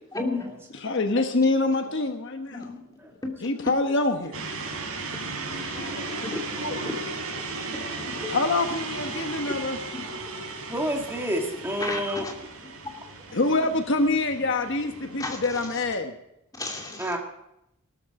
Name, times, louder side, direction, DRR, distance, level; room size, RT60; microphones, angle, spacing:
voice 1, 0.1-0.5 2.5-3.0 3.2-3.4 6.3-6.4 7.9-8.3 9.9-10.0 11.8-12.3 13.6-13.7 15.0-15.6 16.6-17.2, left 2 dB, 15° left, 1 dB, 2.6 m, -33 dB
voice 2, 0.8-2.7 3.4-4.4 5.7-6.3 6.6-6.9 8.3-9.8 13.3-16.1, left 2 dB, 55° left, 6 dB, 1.2 m, -26 dB
sound 1, 4.3-15.9, right 3 dB, 70° right, 4.7 m, -36 dB
voice 3, 10.7-12.2 17.0-17.2, equal, 10° right, 1 dB, 2.2 m, -28 dB
17.0 x 13.5 x 4.9 m, 0.81 s
head